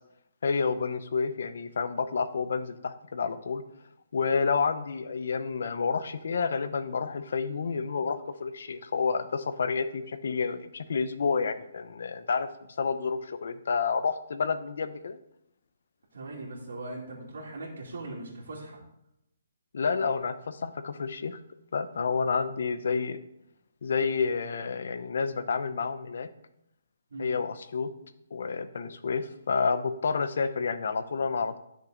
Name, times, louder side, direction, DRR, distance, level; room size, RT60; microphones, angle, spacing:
voice 1, 0.4-3.6 4.1-12.5 12.8-15.2 19.7-21.4 21.7-23.2 23.8-26.3 27.2-27.9 28.3-31.6, left 5 dB, 60° left, 11 dB, 0.8 m, -29 dB
voice 2, 16.1-18.8 27.1-27.3, right 2 dB, 85° right, -7 dB, 2.7 m, -40 dB
11.5 x 6.6 x 3.9 m, 0.81 s
hypercardioid pair, 175°, 0 cm